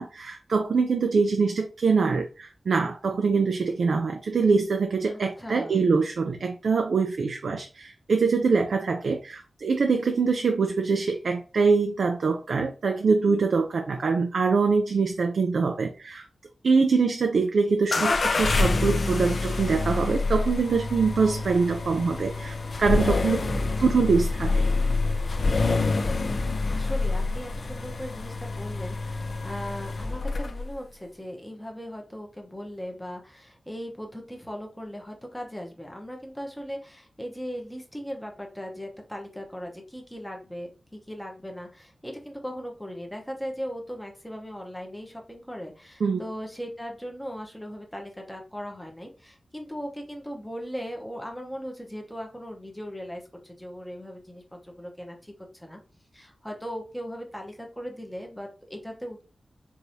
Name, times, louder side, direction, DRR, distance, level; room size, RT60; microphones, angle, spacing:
voice 1, 0.0-16.2 16.6-23.4 23.8-24.6 46.0-46.3, right 4 dB, 80° right, 4 dB, 0.4 m, -24 dB
voice 2, 5.1-5.8 23.2-23.7 26.7-55.8 56.1-59.2, equal, 5° left, 1 dB, 0.9 m, -38 dB
sound 1, 17.9-30.8, left 3 dB, 50° left, 0.4 m, -27 dB
4.7 x 2.6 x 2.7 m, 0.34 s
wide cardioid pair, 135°, 0 cm